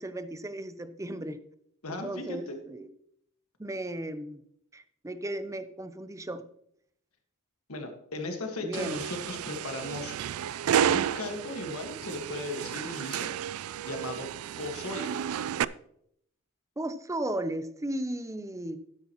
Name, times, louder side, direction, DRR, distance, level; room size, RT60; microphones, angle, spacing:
voice 1, 0.0-1.4 1.9-2.9 3.6-4.4 4.7-6.4 8.6-9.0 16.8-18.8, right 1 dB, 15° right, 11 dB, 0.6 m, -35 dB
voice 2, 1.8-2.5 7.7-10.1 10.9-13.3 13.9-14.3 14.6-15.1, left 2 dB, 75° left, 4 dB, 1.7 m, -37 dB
sound 1, 8.7-15.6, right 9 dB, 75° right, 0.3 m, -31 dB
12.5 x 9.5 x 3.0 m, 0.71 s
head